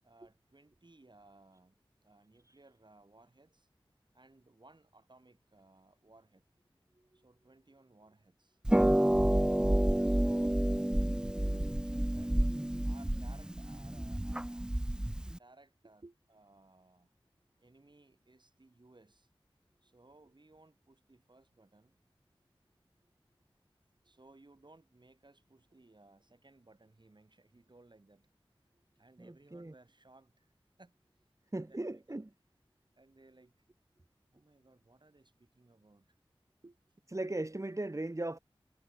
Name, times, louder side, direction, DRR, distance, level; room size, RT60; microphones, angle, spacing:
voice 1, 0.0-3.7 4.1-6.4 7.1-8.6 9.0-9.7 10.1-12.4 12.8-14.9 15.3-17.1 17.6-19.3 19.8-22.0 24.0-28.3 28.7-30.5 30.8-30.9 31.6-32.2 33.0-33.7 34.3-36.2 36.6-36.8, right 2 dB, 50° right, 7.3 m, -61 dB
Harp, 8.6-15.4, right 1 dB, 10° right, 0.4 m, -29 dB
voice 2, 29.2-29.7 31.5-32.3 37.1-38.4, right 2 dB, 30° right, 2.1 m, -37 dB
wide cardioid pair, 40°, 10 cm